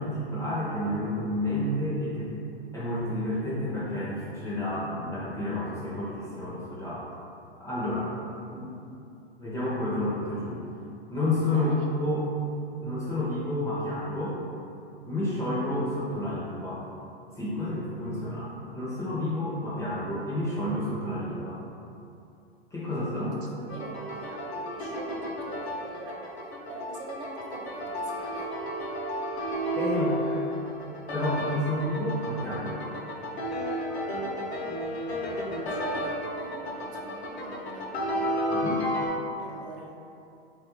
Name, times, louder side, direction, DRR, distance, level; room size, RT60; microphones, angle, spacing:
voice 1, 0.0-2.3 2.7-7.1 7.6-8.1 8.5-8.7 9.4-10.6 11.1-12.2 12.8-14.4 15.1-16.8 17.4-21.6 22.7-23.3 29.8-30.4 31.1-32.8 38.5-38.8, left 1 dB, 10° left, -8 dB, 0.4 m, -30 dB
voice 2, 11.5-11.9 23.1-28.5 34.2-34.8 35.5-38.3 39.4-39.9, right 3 dB, 60° right, -1 dB, 0.6 m, -44 dB
sound 1, 23.7-39.1, equal, 90° left, 0.6 m, -32 dB
3.1 x 2.3 x 2.9 m, 2.7 s
hypercardioid pair, 110°, 31 cm